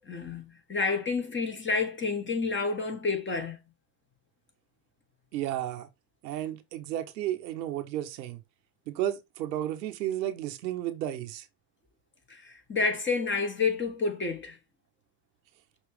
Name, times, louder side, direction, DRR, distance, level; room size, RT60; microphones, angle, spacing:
voice 1, 0.1-3.6 12.3-14.6, left 4 dB, 25° left, 1.8 m, -29 dB
voice 2, 5.3-5.9 6.2-8.4 8.9-11.4, right 12 dB, 85° right, 1.1 m, -33 dB
6.2 x 3.2 x 4.7 m
hypercardioid pair, 90°, 50 cm